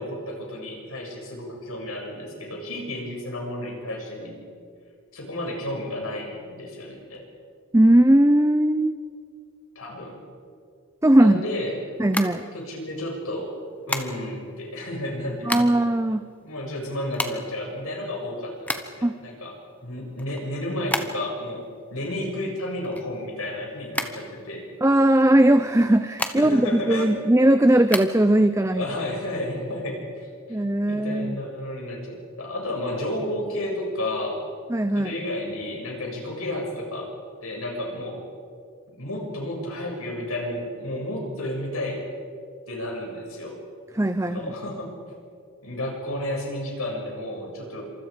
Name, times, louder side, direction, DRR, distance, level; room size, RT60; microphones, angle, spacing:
voice 1, 0.0-4.4 5.1-7.2 9.8-10.2 11.2-11.8 12.5-13.6 13.9-15.6 16.4-19.5 19.8-24.6 26.4-27.2 28.7-30.6 30.8-34.4 34.9-37.1 37.4-38.2 39.0-42.0 42.7-43.6 44.3-44.9 45.6-47.8, left 1 dB, 80° left, 0 dB, 6.9 m, -32 dB
voice 2, 7.7-9.0 11.0-11.4 12.0-12.4 15.5-16.2 19.0-19.2 24.8-28.8 30.5-31.4 34.7-35.1 44.0-44.4, right 1 dB, 15° right, 10 dB, 0.5 m, -19 dB
sound 1, 12.0-13.0 13.9-14.5 15.1-15.9 16.2-16.3 16.5-19.1 19.6-21.5 21.7-23.5 23.9-24.9 25.7-26.7 27.1-28.1, left 2 dB, 5° left, 1.1 m, -31 dB
28.0 x 27.0 x 5.1 m, 2.3 s
head